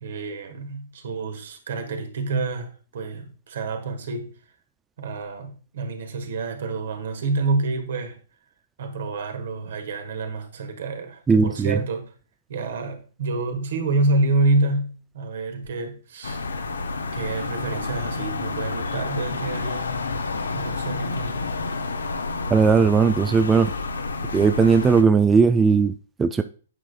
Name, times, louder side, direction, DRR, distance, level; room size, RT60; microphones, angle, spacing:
voice 1, 0.0-4.3 5.0-8.2 8.8-12.1 12.5-16.5 17.1-20.2 20.5-21.4, right 3 dB, 60° right, 1.4 m, -27 dB
voice 2, 11.3-11.8 22.5-23.7 24.3-26.4, right 5 dB, 15° right, 0.4 m, -18 dB
sound 1, 16.2-25.0, left 3 dB, 75° left, 0.8 m, -29 dB
8.8 x 6.1 x 2.2 m
figure-of-eight pair, 115°, 0 cm